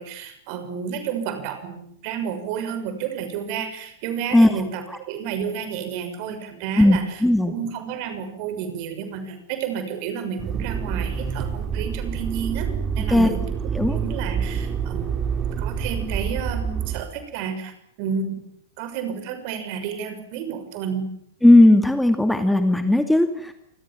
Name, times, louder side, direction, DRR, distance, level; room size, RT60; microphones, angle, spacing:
voice 1, 0.0-12.7 12.9-13.5 13.8-17.7 18.0-18.4 18.8-21.0, right 7 dB, 45° right, 9 dB, 6.4 m, -31 dB
voice 2, 6.8-7.5 13.1-13.4 13.7-14.0 21.4-23.5, left 1 dB, 5° left, 7 dB, 2.2 m, -16 dB
Motor vehicle (road), 10.4-17.0, right 7 dB, 25° right, 2.8 m, -27 dB
29.0 x 25.5 x 7.5 m, 0.71 s
figure-of-eight pair, 95°, 0 cm